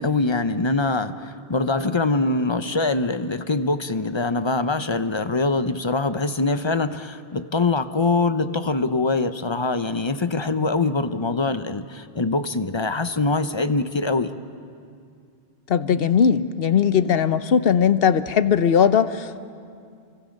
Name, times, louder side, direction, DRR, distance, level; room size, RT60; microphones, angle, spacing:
voice 1, 0.0-14.3, left 3 dB, 30° left, 10 dB, 0.7 m, -23 dB
voice 2, 15.7-19.4, left 7 dB, 70° left, 12 dB, 1.0 m, -19 dB
30.0 x 24.5 x 6.5 m, 2.3 s
omnidirectional pair, 1.0 m